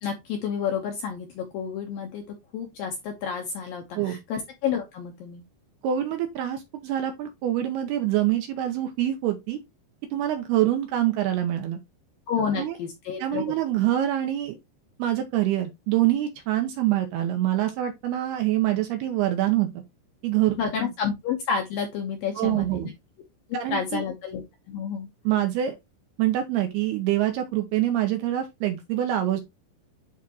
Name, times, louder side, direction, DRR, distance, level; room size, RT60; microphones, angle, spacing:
voice 1, 0.0-2.2 2.5-5.4 12.3-13.5 20.5-22.9 23.5-24.4 24.7-25.1, left 7 dB, 70° left, 2.2 m, -30 dB
voice 2, 5.8-9.6 10.1-11.8 12.6-12.8 13.2-14.6 15.0-19.8 20.2-20.5 22.4-22.9 23.5-24.0 25.3-25.8 26.2-29.4, right 13 dB, 75° right, 2.5 m, -25 dB
10.5 x 3.6 x 2.9 m
omnidirectional pair, 5.3 m